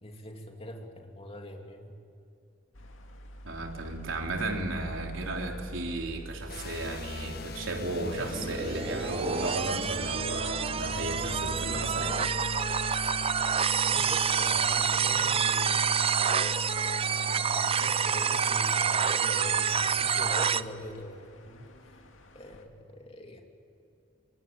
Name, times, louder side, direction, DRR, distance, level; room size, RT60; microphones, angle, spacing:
voice 1, 0.0-1.9 13.9-16.1 17.3-22.0 22.3-23.4, equal, 30° left, 2 dB, 3.0 m, -44 dB
sound 1, 2.7-22.6, right 1 dB, 85° left, 2.3 m, -46 dB
voice 2, 3.4-12.3, right 2 dB, 80° right, 2 dB, 3.7 m, -34 dB
sound 2, 6.5-20.8, left 4 dB, 55° left, 1.6 m, -40 dB
sound 3, 8.1-20.6, right 7 dB, 30° right, 0.6 m, -28 dB
26.0 x 23.0 x 8.9 m, 2.7 s
head